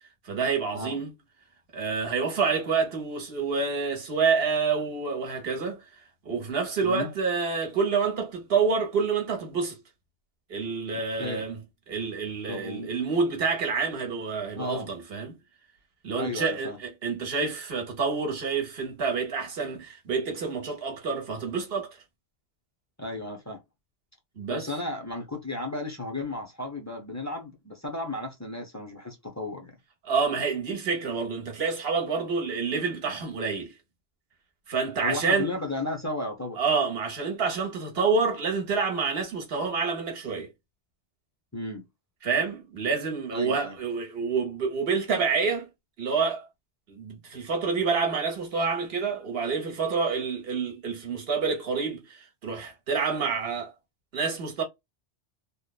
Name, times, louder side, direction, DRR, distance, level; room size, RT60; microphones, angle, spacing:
voice 1, 0.2-1.1 1.7-5.9 6.2-9.8 10.5-11.6 11.9-15.3 16.0-22.0 24.4-24.7 30.0-33.7 34.7-35.5 36.6-40.5 42.2-45.7 46.0-46.5 46.9-53.7 54.1-54.6, right 5 dB, 60° right, 1.0 m, -28 dB
voice 2, 10.9-11.5 12.5-12.9 14.5-14.9 16.1-16.8 23.0-23.6 24.5-29.8 35.0-36.6 41.5-41.9 43.3-43.8, left 2 dB, 20° left, 0.5 m, -34 dB
3.1 x 2.1 x 2.2 m
omnidirectional pair, 1.2 m